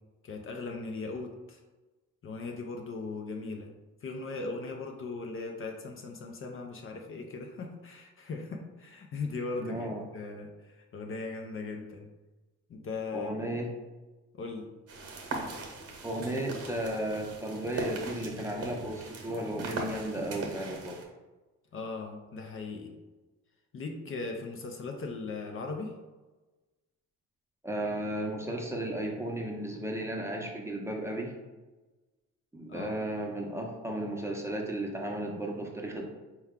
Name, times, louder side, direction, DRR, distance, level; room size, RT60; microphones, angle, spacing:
voice 1, 0.2-1.6 2.2-3.7 4.0-12.1 12.7-13.3 14.3-14.7 21.7-22.9 23.7-25.9 32.7-33.0, left 3 dB, 45° left, 2 dB, 0.6 m, -38 dB
voice 2, 9.6-10.0 13.1-13.7 16.0-21.0 27.6-31.3 32.5-36.1, right 1 dB, 10° right, -1 dB, 0.7 m, -34 dB
sound 1, 14.9-21.0, right 3 dB, 55° right, 0.9 m, -40 dB
4.4 x 2.3 x 3.6 m, 1.2 s
cardioid pair, 90°, 30 cm